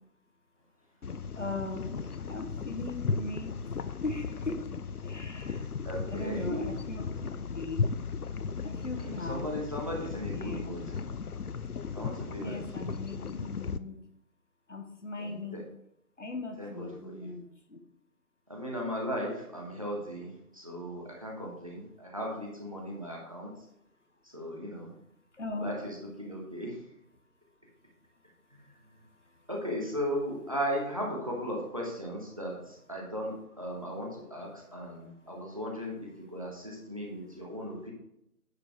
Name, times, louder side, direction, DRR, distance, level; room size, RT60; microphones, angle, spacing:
sound 1, 1.0-13.8, left 5 dB, 70° left, 0.7 m, -36 dB
voice 1, 1.4-3.6 4.0-4.6 5.0-5.6 6.1-7.8 8.6-9.5 10.3-10.8 12.4-14.0 14.7-15.6 16.2-17.8 25.3-25.7 29.3-29.5, left 2 dB, 50° left, 5 dB, 1.3 m, -39 dB
voice 2, 5.4-6.7 8.9-11.0 11.9-13.0 15.2-15.6 16.6-17.4 18.5-23.7 24.2-24.9 25.6-26.9 28.5-29.1 29.5-37.9, equal, 20° right, -2 dB, 1.1 m, -37 dB
9.7 x 4.6 x 4.6 m, 0.80 s
figure-of-eight pair, 160°, 46 cm